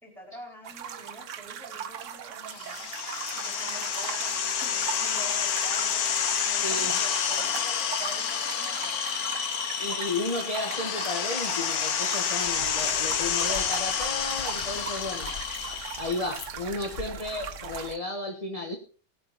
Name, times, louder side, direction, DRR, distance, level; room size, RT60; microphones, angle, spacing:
voice 1, 0.0-3.0 3.3-6.1 6.4-9.0, right 1 dB, ahead, 1 dB, 4.5 m, -46 dB
sound 1, 0.6-18.0, right 8 dB, 60° right, 1.1 m, -39 dB
sound 2, 2.5-16.3, left 8 dB, 80° left, 1.5 m, -29 dB
voice 2, 6.6-7.0 9.6-15.3 16.0-18.8, left 2 dB, 25° left, 3 dB, 1.5 m, -33 dB
sound 3, 12.4-17.9, left 5 dB, 60° left, 1.4 m, -44 dB
18.5 x 8.8 x 4.1 m, 0.38 s
omnidirectional pair, 1.6 m